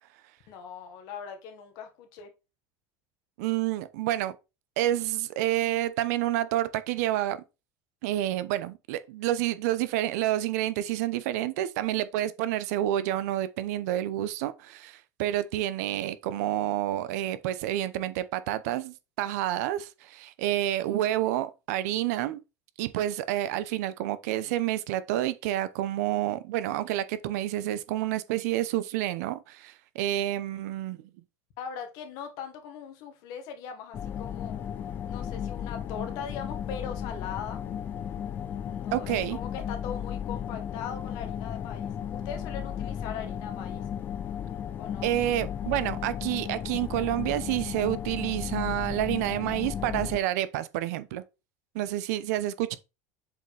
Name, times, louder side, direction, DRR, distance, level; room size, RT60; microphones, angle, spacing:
voice 1, 0.5-2.3 31.6-34.6 35.1-37.6 38.6-43.8 44.8-45.3, left 7 dB, 50° left, 1.6 m, -40 dB
voice 2, 3.4-4.3 4.8-7.4 8.0-22.4 22.8-31.0 38.9-39.4 45.0-51.2 51.7-52.8, right 13 dB, 70° right, 0.8 m, -29 dB
sound 1, 33.9-50.2, left 9 dB, 20° left, 0.4 m, -35 dB
7.6 x 5.1 x 3.4 m
cardioid pair, 180°, 9 cm